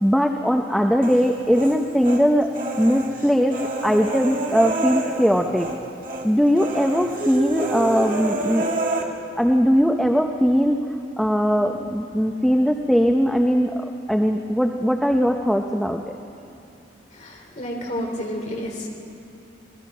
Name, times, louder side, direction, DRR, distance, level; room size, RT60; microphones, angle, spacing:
voice 1, 0.0-2.5 2.8-5.7 6.2-8.7 9.0-10.8 11.2-16.0, equal, ahead, 3 dB, 0.7 m, -20 dB
Human voice, 1.0-2.2 2.5-5.8 6.0-6.3 6.6-9.0, right 2 dB, 45° right, 2.2 m, -28 dB
voice 2, 17.1-18.9, equal, 40° left, 0 dB, 3.3 m, -30 dB
25.5 x 19.5 x 5.4 m, 2.6 s
head